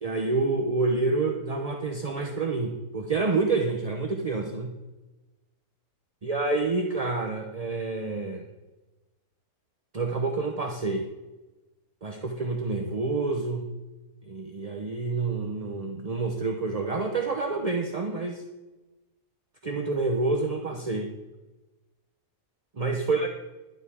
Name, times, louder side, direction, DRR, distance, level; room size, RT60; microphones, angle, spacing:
voice 1, 0.0-4.7 6.2-8.5 9.9-11.1 12.0-13.6 14.2-18.4 19.6-21.1 22.8-23.3, right 3 dB, 35° right, 3 dB, 0.7 m, -28 dB
11.5 x 5.2 x 8.4 m, 1.1 s
omnidirectional pair, 1.7 m